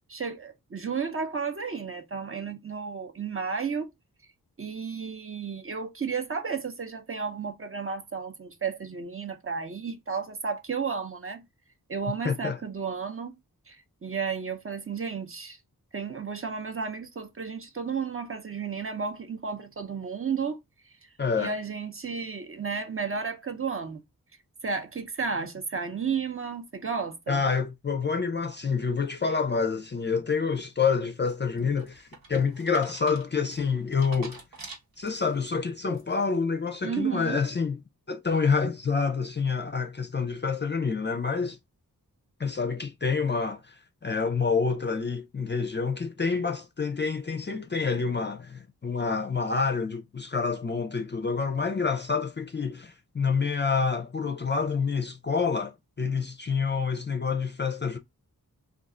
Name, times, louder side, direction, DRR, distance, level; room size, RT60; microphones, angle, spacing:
voice 1, 0.1-3.9 4.6-11.4 11.9-13.3 13.7-15.6 15.9-20.6 21.4-24.0 24.6-27.4 36.8-37.4, right 5 dB, 35° right, 0.6 m, -33 dB
voice 2, 12.2-12.6 21.2-21.5 27.3-34.4 35.0-37.8 38.1-41.6 42.4-58.0, left 5 dB, 30° left, 0.4 m, -28 dB
sound 1, 31.3-35.5 35.9-36.4, right 3 dB, 70° right, 1.0 m, -47 dB
2.4 x 2.3 x 3.6 m
wide cardioid pair, 65°, 37 cm